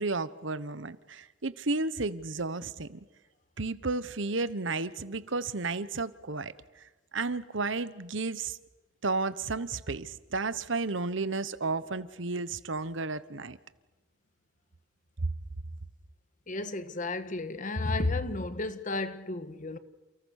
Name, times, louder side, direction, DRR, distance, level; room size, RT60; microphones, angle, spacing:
voice 1, 0.0-3.0 3.6-8.6 9.0-13.6 15.2-15.3, right 3 dB, 65° right, 1.1 m, -32 dB
voice 2, 16.5-19.8, left 2 dB, 40° left, 1.4 m, -32 dB
29.5 x 29.0 x 6.6 m
head